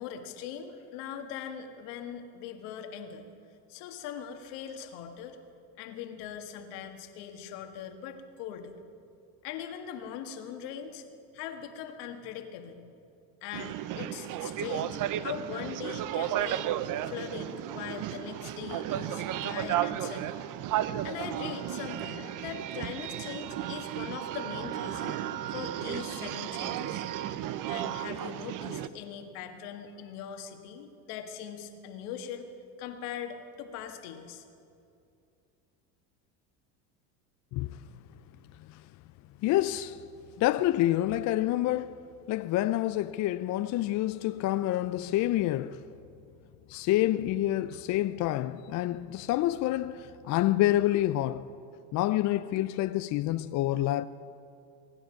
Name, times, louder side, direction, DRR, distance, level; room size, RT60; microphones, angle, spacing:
voice 1, 0.0-3.3 3.7-5.4 5.8-8.8 9.4-11.0 11.3-12.8 13.4-16.7 17.0-20.4 21.0-25.2 25.5-27.0 27.7-32.5 32.8-34.4, left 8 dB, 70° left, 1.8 m, -41 dB
sound 1, 13.5-28.9, right 12 dB, 40° right, 0.7 m, -34 dB
voice 2, 39.4-40.0 40.4-42.0 42.3-45.8 46.7-51.5 51.9-54.0, left 14 dB, 40° left, 0.4 m, -27 dB
23.0 x 10.0 x 5.8 m
hypercardioid pair, 95°, 48 cm